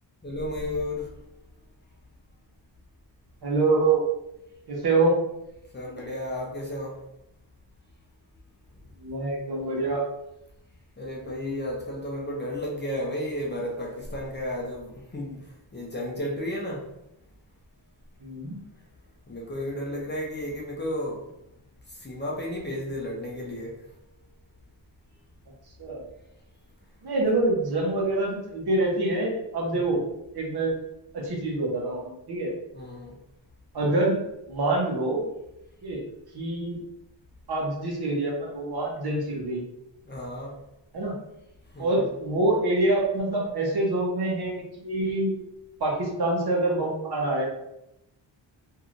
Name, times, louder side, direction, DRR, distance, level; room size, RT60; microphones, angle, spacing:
voice 1, 0.2-1.1 5.7-7.0 11.0-15.4 15.7-16.8 19.3-21.2 22.0-23.7 29.7-29.8 32.7-33.2 40.0-40.5 41.7-42.0, left 1 dB, 25° left, -3 dB, 0.6 m, -33 dB
voice 2, 3.4-4.0 4.7-5.1 9.0-10.0 18.2-18.6 25.8-26.0 27.0-30.0 30.3-30.7 31.1-32.5 33.7-34.2 34.5-35.3 35.8-36.0 36.3-36.8 37.5-39.6 40.9-41.1 41.8-44.5 44.8-45.3 45.8-47.5, right 2 dB, 55° right, -2 dB, 1.0 m, -25 dB
3.1 x 2.7 x 2.5 m, 0.84 s
wide cardioid pair, 120°, 46 cm